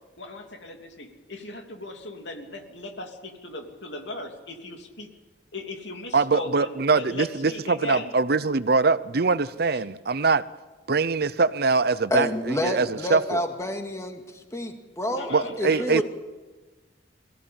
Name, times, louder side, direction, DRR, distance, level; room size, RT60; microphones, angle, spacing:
voice 1, 0.2-5.1 5.5-8.1 9.7-9.8 15.1-16.0, left 2 dB, 75° left, 3.1 m, -37 dB
voice 2, 6.1-10.4 10.9-13.4 15.3-16.0, right 4 dB, 60° right, 0.7 m, -23 dB
voice 3, 12.1-15.3 15.6-16.0, left 1 dB, 15° left, 2.1 m, -29 dB
22.5 x 16.0 x 8.8 m
head